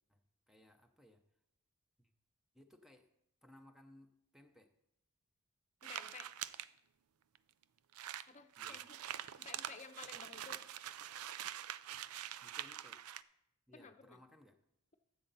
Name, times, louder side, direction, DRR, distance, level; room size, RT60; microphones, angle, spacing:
voice 1, 0.1-1.2 2.0-2.1 2.5-3.1 3.4-4.8 8.6-8.9 11.9-12.1 12.4-13.1 13.7-14.6, left 1 dB, ahead, 6 dB, 0.6 m, -63 dB
voice 2, 5.8-6.3 8.3-9.0 9.4-10.6 13.7-14.2, left 5 dB, 35° left, 8 dB, 0.7 m, -53 dB
sound 1, 5.8-6.7 7.4-7.5 7.6-7.7 7.9-13.2, right 11 dB, 85° right, 0.4 m, -45 dB
14.0 x 7.7 x 4.0 m, 0.80 s
head